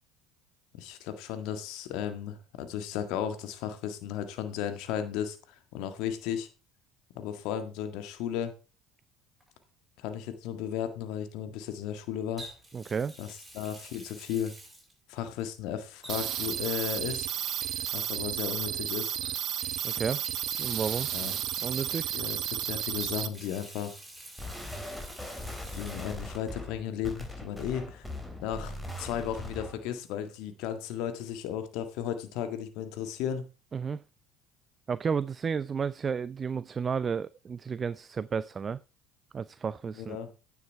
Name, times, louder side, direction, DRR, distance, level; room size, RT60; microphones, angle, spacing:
voice 1, 0.7-6.5 7.1-8.5 10.0-12.5 13.2-13.3 13.5-14.5 15.1-17.3 17.9-19.1 21.1-21.3 22.1-23.9 25.7-28.0 28.4-33.4 39.9-40.3, left 9 dB, 70° left, 9 dB, 1.7 m, -35 dB
Water tap faucet, 9.4-9.6 12.4-15.4 16.0-18.5 19.2-22.6 23.0-26.2 26.5-26.6 28.1-28.2, right 1 dB, 15° right, 6.5 m, -49 dB
voice 2, 12.7-13.1 19.8-20.2 20.6-21.1 21.6-22.1 33.7-34.0 34.9-38.8 39.3-40.2, right 6 dB, 35° right, 18 dB, 0.4 m, -32 dB
sound 1, 16.1-23.3, right 11 dB, 55° right, 0.9 m, -33 dB
sound 2, 24.4-29.9, left 1 dB, 5° left, 3.4 m, -40 dB
9.8 x 7.2 x 4.5 m, 0.32 s
hypercardioid pair, 75°, 0 cm